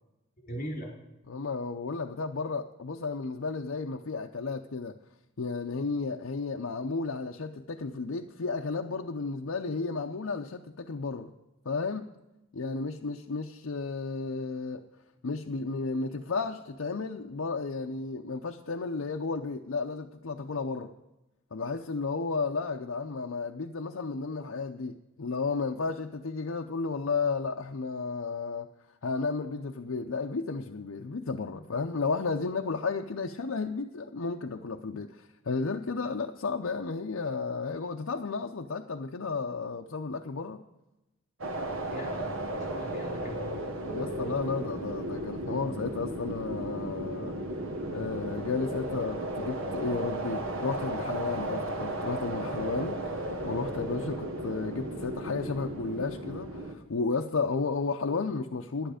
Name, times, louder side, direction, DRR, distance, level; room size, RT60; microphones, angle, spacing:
voice 1, 0.4-0.9 41.9-43.6, equal, 40° left, 4.1 m, -40 dB
voice 2, 1.3-4.9 5.4-11.3 11.7-12.1 12.5-14.8 15.2-20.9 21.5-28.7 29.0-40.6 43.9-47.3 47.9-58.9, left 4 dB, 75° left, 0.6 m, -33 dB
sound 1, 41.4-56.7, right 1 dB, 80° right, 1.4 m, -35 dB
11.0 x 10.5 x 5.0 m
head